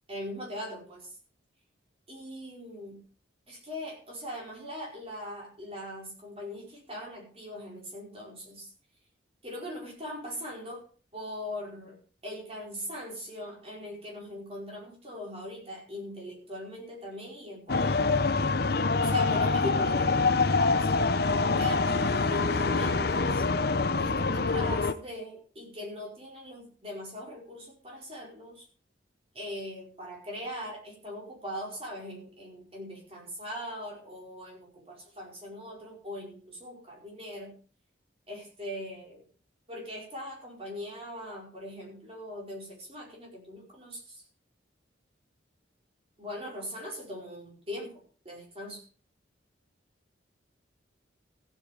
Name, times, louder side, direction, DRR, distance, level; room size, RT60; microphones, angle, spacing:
voice 1, 0.1-1.2 2.1-3.0 3.5-8.7 9.4-10.8 11.1-18.3 19.0-20.9 21.4-23.5 24.0-28.7 29.3-37.5 38.3-39.2 39.7-44.2 46.2-48.8, equal, 30° right, -2 dB, 5.2 m, -40 dB
sound 1, 17.7-24.9, left 3 dB, 55° left, 0.7 m, -25 dB
15.0 x 8.5 x 5.1 m, 0.40 s
head